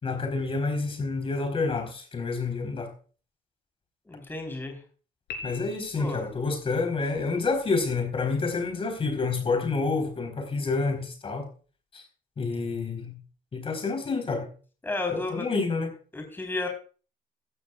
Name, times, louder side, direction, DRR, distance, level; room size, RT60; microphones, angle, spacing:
voice 1, 0.0-2.9 5.4-11.5 11.9-12.0 12.4-13.1 13.5-14.5 15.1-15.9, left 4 dB, 35° left, 4.1 m, -28 dB
voice 2, 4.1-4.8 6.0-6.2 14.8-15.5 16.1-16.7, left 2 dB, 10° left, 4.0 m, -32 dB
Piano, 5.3-6.4, left 4 dB, 85° left, 3.6 m, -41 dB
15.5 x 14.0 x 2.4 m
cardioid pair, 110°, 17 cm